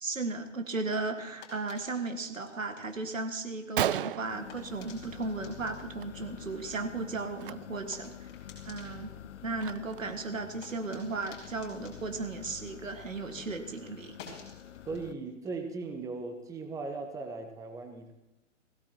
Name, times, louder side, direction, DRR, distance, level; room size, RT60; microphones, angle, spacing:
voice 1, 0.0-8.3 8.7-9.1 9.4-14.2, right 3 dB, 85° right, 6 dB, 1.9 m, -35 dB
sound 1, 0.6-13.3 13.6-16.9, left 5 dB, 30° left, 5.3 m, -56 dB
Gunshot gunfire, 3.1-3.2 3.5-3.6 3.8-5.4 5.7-6.1 6.3-6.5 7.3-7.5 8.1-8.2 8.6-10.2, right 11 dB, 45° right, 0.4 m, -35 dB
sound 2, 4.3-15.1, left 10 dB, 65° left, 0.8 m, -48 dB
voice 2, 14.9-18.1, right 3 dB, 10° right, 6 dB, 0.9 m, -38 dB
20.5 x 16.5 x 3.0 m, 0.97 s
figure-of-eight pair, 125°, 38 cm